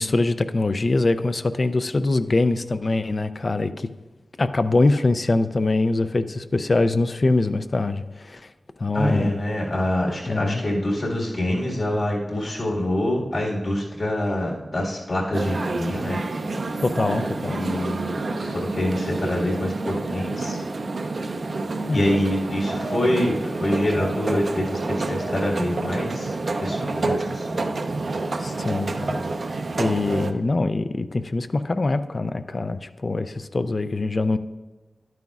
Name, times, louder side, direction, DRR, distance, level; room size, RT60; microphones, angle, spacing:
voice 1, 0.0-3.9 4.4-8.4 8.8-9.4 10.3-10.6 16.8-17.7 21.9-22.2 28.4-29.2 29.8-34.4, left 2 dB, 45° left, 11 dB, 0.3 m, -23 dB
voice 2, 8.9-16.2 17.5-20.6 21.9-27.6, left 1 dB, 65° left, -3 dB, 1.9 m, -25 dB
sound 1, 15.3-30.3, right 3 dB, 60° right, 0.5 m, -28 dB
11.0 x 9.1 x 2.4 m, 1.2 s
wide cardioid pair, 85°, 0 cm